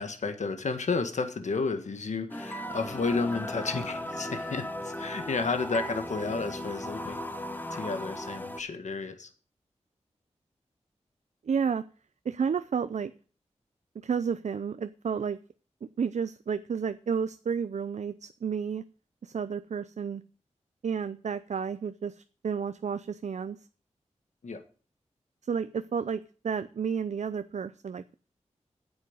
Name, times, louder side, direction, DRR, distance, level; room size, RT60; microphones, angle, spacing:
voice 1, 0.0-7.3 7.7-9.3 24.4-24.6, left 4 dB, 80° left, 8 dB, 1.6 m, -32 dB
sound 1, 2.3-8.6, left 1 dB, 15° left, 1.2 m, -37 dB
voice 2, 11.5-11.8 12.3-13.1 14.0-15.4 16.0-18.8 19.2-20.2 20.8-23.6 25.5-28.1, right 6 dB, 75° right, 12 dB, 0.6 m, -31 dB
9.3 x 8.0 x 8.0 m, 0.40 s
wide cardioid pair, 65°, 12 cm